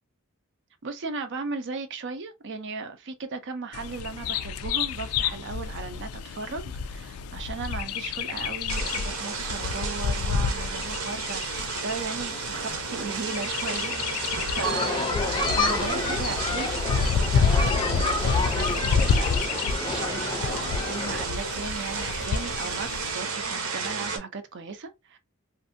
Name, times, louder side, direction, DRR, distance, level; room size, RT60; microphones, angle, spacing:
voice 1, 0.8-25.2, right 4 dB, 55° right, 0.5 m, -37 dB
Bird vocalization bird call bird song, 3.7-23.1, left 6 dB, 80° left, 0.3 m, -29 dB
sound 1, 8.7-24.2, right 4 dB, 75° right, 0.9 m, -33 dB
sound 2, 14.6-21.2, left 2 dB, 20° left, 0.5 m, -29 dB
2.6 x 2.5 x 2.6 m
head